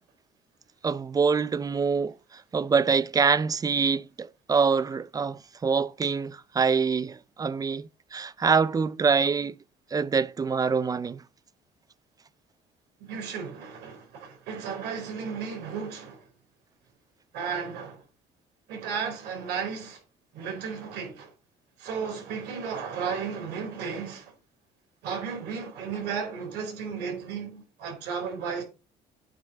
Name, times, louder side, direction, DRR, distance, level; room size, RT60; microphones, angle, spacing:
voice 1, 0.8-9.6 9.9-11.2, right 5 dB, 20° right, 0.4 m, -25 dB
voice 2, 13.0-16.2 17.3-18.0 18.7-20.0 20.3-21.3 21.8-24.3 25.0-28.6, right 6 dB, 80° right, 4.0 m, -34 dB
8.7 x 3.3 x 6.4 m
cardioid pair, 110°, 17 cm